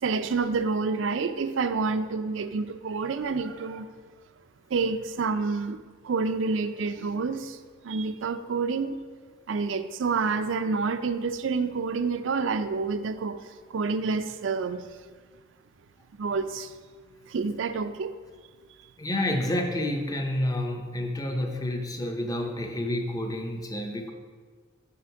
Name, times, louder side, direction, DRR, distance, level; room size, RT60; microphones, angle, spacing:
voice 1, 0.0-3.9 4.7-5.8 6.0-7.6 7.8-9.0 9.5-13.4 13.7-14.9 16.2-16.7 17.3-18.1, right 4 dB, 75° right, 11 dB, 0.4 m, -28 dB
voice 2, 19.0-24.1, left 1 dB, 20° left, 4 dB, 0.7 m, -29 dB
8.4 x 4.5 x 4.6 m, 1.5 s
head